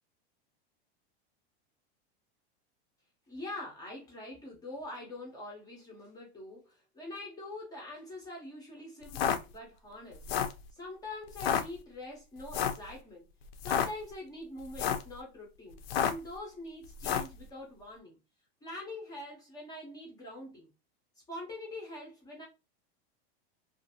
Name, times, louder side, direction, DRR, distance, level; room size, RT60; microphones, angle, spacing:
voice 1, 3.3-10.3 10.7-13.3 13.6-18.2 18.6-20.7 21.3-22.5, left 1 dB, 10° left, 0.5 m, -44 dB
sound 1, 9.0-9.4 10.1-10.6 11.3-11.6 12.5-12.8 13.5-13.9 14.6-15.1 15.8-16.3 17.0-17.3, left 8 dB, 65° left, 0.5 m, -30 dB
2.5 x 2.4 x 2.7 m
supercardioid pair, 155°, 32 cm